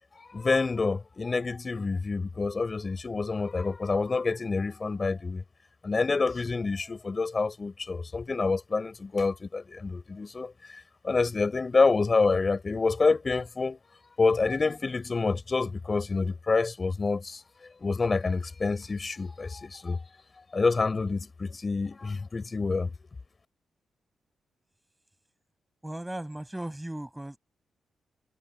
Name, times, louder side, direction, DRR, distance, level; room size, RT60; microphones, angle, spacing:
voice 1, 0.1-5.4 5.8-13.8 14.2-17.4 17.8-20.0 20.5-22.9, left 4 dB, 40° left, 4.8 m, -27 dB
voice 2, 25.8-27.4, right 1 dB, 10° right, 6.1 m, -37 dB
cardioid pair, 60°, 0 cm